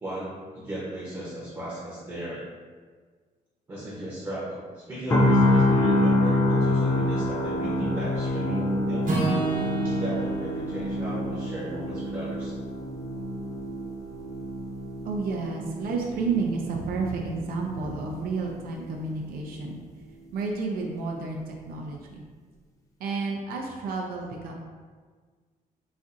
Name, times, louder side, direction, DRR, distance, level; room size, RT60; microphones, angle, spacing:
voice 1, 0.0-2.4 3.7-9.2 9.8-12.5, right 1 dB, 20° right, -8 dB, 0.7 m, -36 dB
sound 1, 5.1-19.1 19.4-19.7, left 1 dB, 20° left, 0.4 m, -27 dB
Acoustic guitar / Strum, 9.0-13.3, right 3 dB, 65° right, 1.0 m, -31 dB
voice 2, 15.0-19.8 20.3-22.2 23.0-24.5, right 4 dB, 85° right, 0 dB, 0.4 m, -31 dB
4.1 x 2.5 x 2.5 m, 1.5 s
cardioid pair, 165°, 15 cm